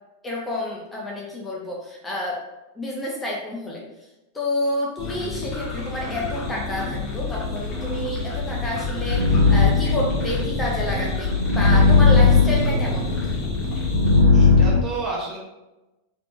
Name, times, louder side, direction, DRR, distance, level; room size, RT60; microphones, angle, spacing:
voice 1, 0.2-2.4 2.8-3.8 4.3-13.2, left 1 dB, 10° left, -3 dB, 0.6 m, -29 dB
sound 1, 5.0-14.2, left 4 dB, 30° left, 1.0 m, -29 dB
sound 2, 8.4-14.8, left 3 dB, 75° right, 0.5 m, -18 dB
voice 2, 14.3-15.4, right 3 dB, 25° right, -3 dB, 1.0 m, -30 dB
3.3 x 3.0 x 2.6 m, 1.0 s
figure-of-eight pair, 90°, 0 cm